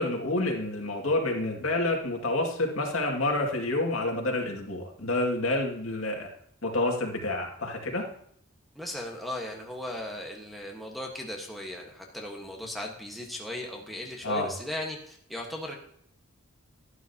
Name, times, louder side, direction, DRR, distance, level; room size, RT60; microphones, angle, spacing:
voice 1, 0.0-6.3 6.6-8.0 14.2-14.5, left 2 dB, 65° left, 1 dB, 2.2 m, -28 dB
voice 2, 8.7-15.7, left 1 dB, ahead, -2 dB, 1.4 m, -37 dB
12.5 x 11.5 x 2.9 m, 0.66 s
head